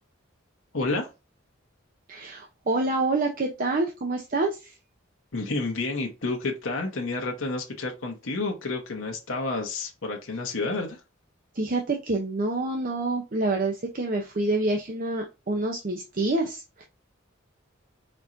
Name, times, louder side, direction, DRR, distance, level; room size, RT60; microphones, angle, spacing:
voice 1, 0.7-1.1 5.3-11.0, left 3 dB, 85° left, 1.0 m, -30 dB
voice 2, 2.1-4.7 11.5-16.9, right 2 dB, 45° right, 0.7 m, -27 dB
4.4 x 4.2 x 2.5 m
head